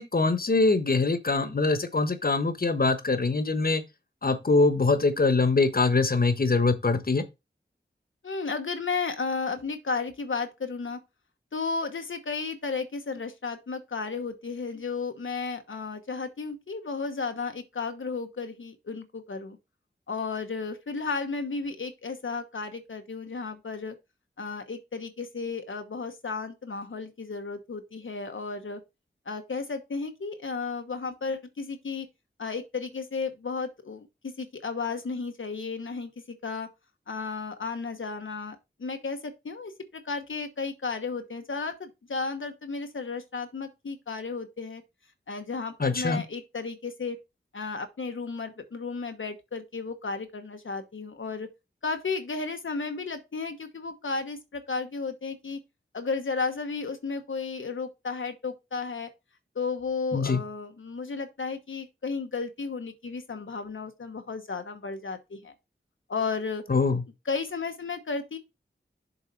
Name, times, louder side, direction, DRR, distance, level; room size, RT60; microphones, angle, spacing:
voice 1, 0.0-3.8 4.2-7.2 45.8-46.2 60.1-60.4 66.7-67.0, left 3 dB, 50° left, 1.2 m, -23 dB
voice 2, 8.2-11.0 11.5-19.6 20.1-23.9 24.4-28.8 29.3-32.1 32.4-36.7 37.1-44.8 45.3-47.2 47.5-51.5 51.8-55.6 55.9-59.1 59.5-65.5 66.1-66.6 67.2-68.4, left 4 dB, 80° left, 1.1 m, -33 dB
7.1 x 4.0 x 5.4 m
wide cardioid pair, 50°, 20 cm